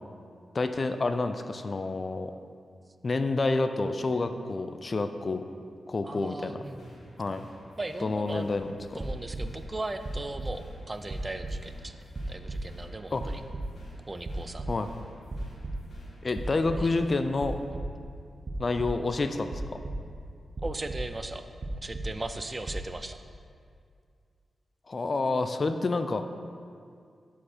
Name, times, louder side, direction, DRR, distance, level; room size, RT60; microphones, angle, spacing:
voice 1, 0.5-2.3 3.0-5.4 5.9-6.6 7.2-7.4 8.0-8.7 13.1-13.2 14.7-14.9 16.2-17.6 18.6-19.6 24.9-26.2, left 3 dB, 45° left, 8 dB, 0.4 m, -28 dB
voice 2, 6.0-7.1 7.8-8.5 8.9-12.0 12.3-13.4 14.1-14.7 16.8-16.9 20.6-21.4 21.8-23.2, right 2 dB, 30° right, 9 dB, 0.4 m, -38 dB
sound 1, 6.4-17.6, left 1 dB, 75° left, 1.2 m, -54 dB
sound 2, 9.0-9.6 10.0-10.8 11.1-12.8 13.2-14.0 14.3-15.0 15.3-16.0 16.3-17.0 17.4-18.2 18.4-19.1 19.5-20.3 20.6-21.3 21.6-22.4 22.6-22.9, right 2 dB, 45° right, 0.9 m, -36 dB
7.2 x 4.3 x 4.4 m, 2.3 s
cardioid pair, 50°, 0 cm